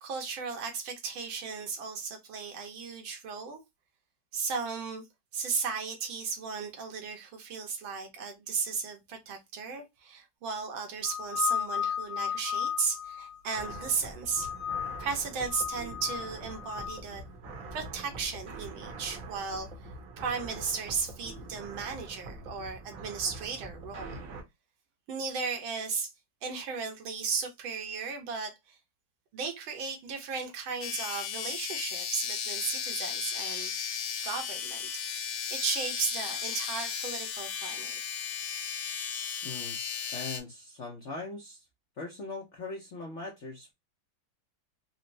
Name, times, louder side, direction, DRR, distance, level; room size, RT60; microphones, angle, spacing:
voice 1, 0.0-3.6 4.3-5.0 5.3-14.5 15.0-17.2 17.7-19.7 20.2-24.2 25.1-26.1 26.4-28.8 29.3-33.7 34.2-35.0 35.5-38.0, right 5 dB, 80° right, 1.7 m, -35 dB
sound 1, 11.0-13.9 14.3-15.1 15.4-17.0, left 8 dB, 40° left, 0.9 m, -34 dB
sound 2, 13.5-24.4, right 2 dB, 60° right, 1.0 m, -44 dB
sound 3, 30.8-40.4, left 7 dB, 85° left, 1.5 m, -35 dB
voice 2, 39.4-39.8 40.1-41.7 42.0-43.7, left 3 dB, 65° left, 0.7 m, -40 dB
4.1 x 2.0 x 2.6 m
omnidirectional pair, 2.2 m